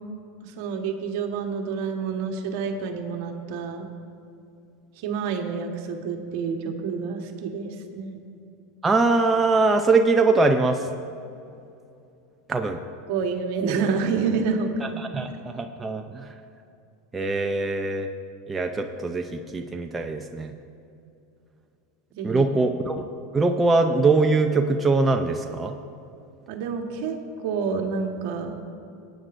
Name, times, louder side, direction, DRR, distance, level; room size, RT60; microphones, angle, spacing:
voice 1, 0.4-3.9 5.0-8.2 13.1-15.0 22.1-22.4 26.5-28.5, right 5 dB, 65° right, 3 dB, 1.4 m, -28 dB
voice 2, 8.8-10.9 12.5-12.8 14.8-16.3 17.1-18.1 18.5-20.5 22.2-23.1 23.3-25.7, right 3 dB, 15° right, 4 dB, 0.6 m, -22 dB
19.0 x 9.0 x 2.6 m, 2.6 s
supercardioid pair, 115°, 0 cm